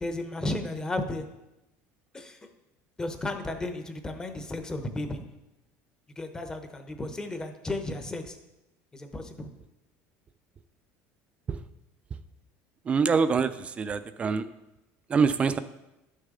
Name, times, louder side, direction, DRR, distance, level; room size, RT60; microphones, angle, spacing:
voice 1, 0.0-1.3 2.1-2.4 3.0-5.2 6.2-8.4 8.9-9.5, left 2 dB, 15° left, 6 dB, 0.8 m, -34 dB
voice 2, 12.8-14.4 15.1-15.6, right 5 dB, 20° right, 12 dB, 0.4 m, -25 dB
12.0 x 6.6 x 3.7 m, 0.97 s
cardioid pair, 155°, 5 cm